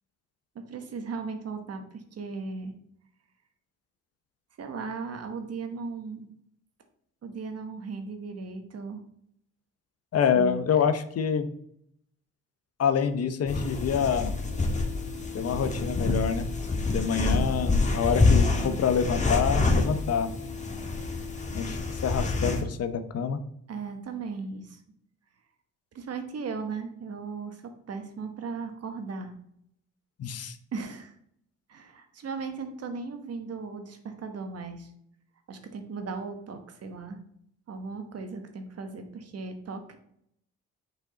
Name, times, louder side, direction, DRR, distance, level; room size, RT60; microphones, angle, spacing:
voice 1, 0.5-2.7 4.6-6.3 7.2-9.0 10.3-10.8 23.7-24.8 25.9-29.3 30.7-31.1 31.7-34.9 35.5-37.2 37.7-40.0, right 4 dB, 55° right, 7 dB, 1.2 m, -37 dB
voice 2, 10.1-11.5 12.8-14.3 15.3-16.6 16.9-20.3 21.5-23.4 30.2-30.6, left 7 dB, 55° left, 10 dB, 0.8 m, -26 dB
sound 1, 13.5-22.6, left 3 dB, 25° left, 1.5 m, -27 dB
6.4 x 5.1 x 3.9 m, 0.70 s
cardioid pair, 90°, 30 cm